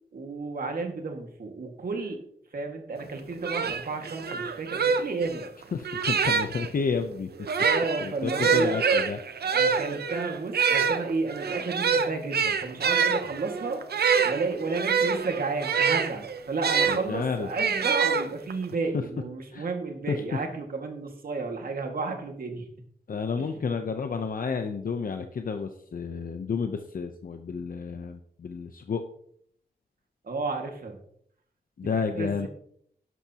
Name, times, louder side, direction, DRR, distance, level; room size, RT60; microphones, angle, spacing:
voice 1, 0.1-2.2 2.5-5.5 7.6-8.8 9.5-13.8 14.2-22.7 23.4-23.5 30.2-31.0 32.1-32.5, right 3 dB, 65° right, 3 dB, 2.0 m, -32 dB
sound 1, 3.1-3.2 3.4-6.7 7.4-17.0 17.5-18.6, right 6 dB, 85° right, 0.8 m, -25 dB
voice 2, 5.7-7.3 8.0-9.2 16.9-17.5 19.5-19.7 20.1-20.2 23.1-29.0 31.8-32.5, left 5 dB, 60° left, 6 dB, 0.8 m, -31 dB
12.5 x 11.0 x 3.0 m, 0.66 s
wide cardioid pair, 135°, 16 cm